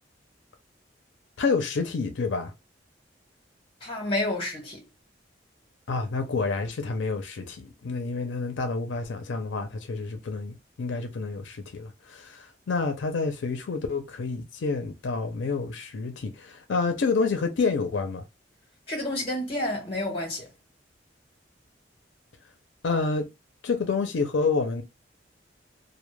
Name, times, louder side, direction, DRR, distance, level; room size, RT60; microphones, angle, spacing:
voice 1, 1.4-2.5 5.9-18.2 22.8-23.3 23.6-24.8, left 4 dB, 90° left, 0.5 m, -28 dB
voice 2, 3.8-4.8 18.9-20.5, left 1 dB, 30° left, 1.1 m, -29 dB
2.1 x 2.1 x 3.0 m
head